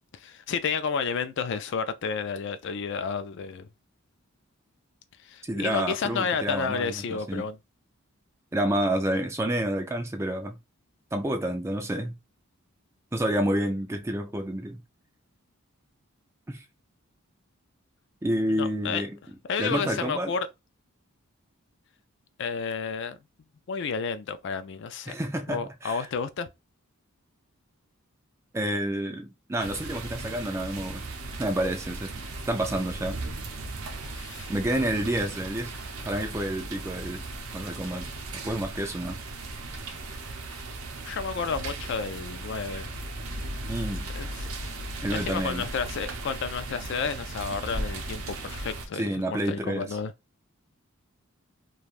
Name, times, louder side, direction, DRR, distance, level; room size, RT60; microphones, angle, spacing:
voice 1, 0.1-3.7 5.2-7.6 18.6-19.0 19.5-20.5 22.4-23.2 23.7-25.2 25.5-26.5 34.0-34.5 41.0-42.9 44.1-44.5 45.1-50.1, left 5 dB, 55° left, 0.3 m, -31 dB
voice 2, 5.4-7.4 8.5-10.6 11.1-12.1 13.1-14.8 16.5-16.6 18.2-19.2 19.6-20.3 25.1-26.1 28.5-31.0 31.4-32.1 32.5-33.2 34.5-35.7 36.0-37.2 37.5-39.2 43.7-44.1 45.0-45.6 48.9-49.9, right 1 dB, 15° right, 0.4 m, -29 dB
sound 1, 29.6-48.9, right 2 dB, 80° right, 0.7 m, -37 dB
3.2 x 2.3 x 2.4 m
head